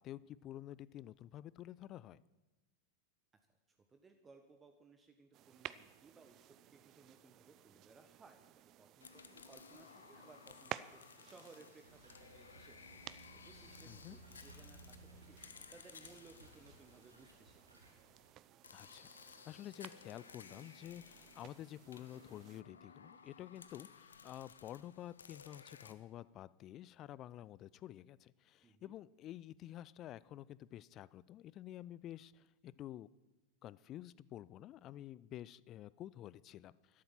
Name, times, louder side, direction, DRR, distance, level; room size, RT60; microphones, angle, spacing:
voice 1, 0.0-2.2 13.8-14.2 18.7-33.1 33.6-37.0, left 12 dB, 35° left, 20 dB, 0.4 m, -50 dB
voice 2, 3.7-8.4 8.8-13.0 13.4-15.4 15.7-17.8 28.6-29.0, right 4 dB, 20° right, 6 dB, 1.3 m, -62 dB
sound 1, 5.3-22.6, right 13 dB, 35° right, 0.6 m, -55 dB
sound 2, 9.0-17.8 18.6-25.9, left 6 dB, 70° left, 0.9 m, -58 dB
sound 3, 11.8-18.3, right 1 dB, 85° right, 2.9 m, -61 dB
12.5 x 12.0 x 7.4 m, 1.1 s
figure-of-eight pair, 90°, 0 cm